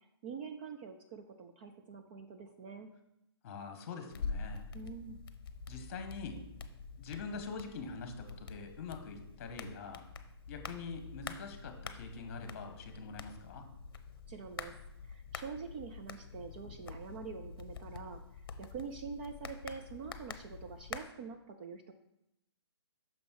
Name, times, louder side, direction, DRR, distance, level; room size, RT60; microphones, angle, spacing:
voice 1, 0.2-2.9 4.7-5.2 14.3-14.7 15.0-18.2 18.6-21.9, right 5 dB, 20° right, 5 dB, 0.4 m, -45 dB
voice 2, 3.4-4.6 5.7-6.4 7.0-10.0 10.5-13.7, left 4 dB, 35° left, 6 dB, 1.3 m, -44 dB
sound 1, 4.1-21.0, left 5 dB, 55° left, 0.8 m, -46 dB
6.2 x 5.3 x 4.7 m, 0.83 s
hypercardioid pair, 150°, 14 cm